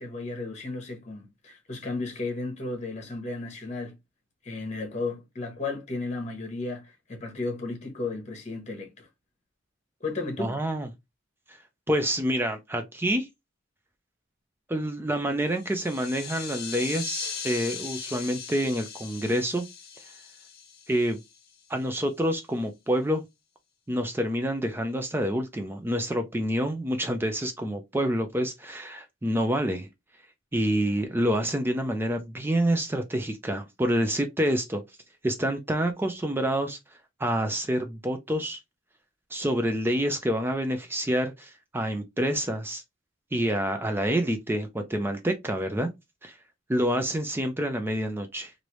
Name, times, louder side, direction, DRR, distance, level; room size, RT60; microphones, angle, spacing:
voice 1, 0.0-4.0 4.4-9.1 10.0-10.6, left 3 dB, 35° left, 1.0 m, -34 dB
voice 2, 10.4-10.9 11.5-11.6 11.9-13.3 14.7-19.7 20.9-21.2 21.7-23.2 23.9-29.9 30.5-34.8 35.2-36.8 37.2-38.6 39.3-42.8 43.3-45.9 46.2-46.4 46.7-48.5, equal, 10° right, 0.4 m, -27 dB
sound 1, 15.5-21.6, left 7 dB, 50° left, 0.6 m, -39 dB
3.2 x 2.6 x 3.0 m
head